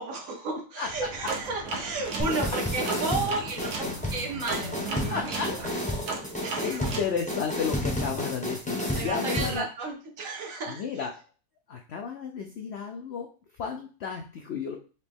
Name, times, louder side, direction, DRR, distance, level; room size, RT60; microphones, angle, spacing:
voice 1, 0.0-5.4 6.4-6.9 8.9-10.8, right 3 dB, 60° right, 2 dB, 1.2 m, -33 dB
voice 2, 0.8-1.3 5.1-5.8 6.6-9.7 10.7-11.1 11.7-13.3 13.6-14.8, left 6 dB, 85° left, 3 dB, 0.5 m, -33 dB
sound 1, 0.8-5.9, left 1 dB, 40° right, 0.7 m, -43 dB
sound 2, 1.3-3.9 4.5-7.1, right 4 dB, 75° right, 1.4 m, -35 dB
sound 3, 2.2-9.6, left 1 dB, 10° left, 0.4 m, -31 dB
4.3 x 2.9 x 3.5 m, 0.37 s
omnidirectional pair, 1.7 m